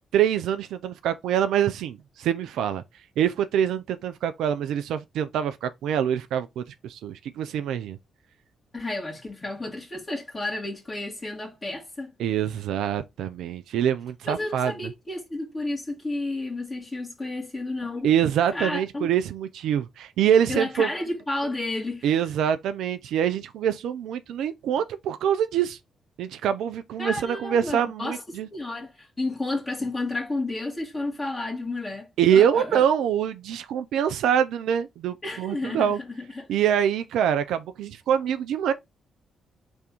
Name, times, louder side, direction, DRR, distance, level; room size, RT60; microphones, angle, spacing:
voice 1, 0.1-2.8 3.2-8.0 12.2-14.7 18.0-20.9 22.0-25.8 26.2-28.5 32.2-36.0 36.5-38.7, right 9 dB, 70° right, 0.4 m, -25 dB
voice 2, 8.7-12.1 14.2-18.1 18.5-19.1 20.5-22.2 27.0-28.2 28.5-32.8 35.2-35.9 36.3-36.5, left 2 dB, 30° left, 1.7 m, -31 dB
3.5 x 3.4 x 4.1 m
hypercardioid pair, 40°, 0 cm